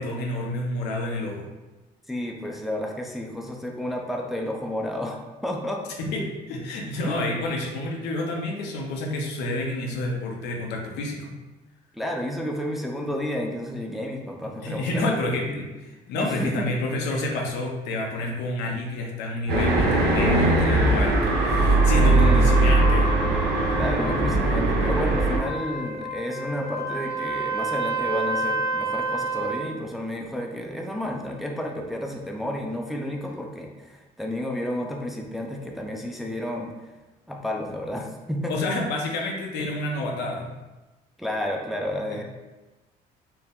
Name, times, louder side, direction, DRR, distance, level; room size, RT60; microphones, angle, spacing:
voice 1, 0.0-1.5 6.0-11.3 14.6-15.7 16.1-23.1 38.5-40.5 42.1-42.2, left 1 dB, 85° left, 0 dB, 0.7 m, -29 dB
voice 2, 2.1-5.9 7.0-7.1 11.9-15.1 15.5-15.6 16.2-16.8 21.9-22.7 23.7-36.7 37.3-38.6 41.2-42.2, left 1 dB, ahead, 1 dB, 0.5 m, -31 dB
sound 1, 19.5-25.4, right 2 dB, 75° right, 1.1 m, -20 dB
Trumpet, 21.8-29.7, right 2 dB, 20° right, 1.3 m, -30 dB
4.4 x 2.1 x 3.6 m, 1.1 s
cardioid pair, 110°, 17 cm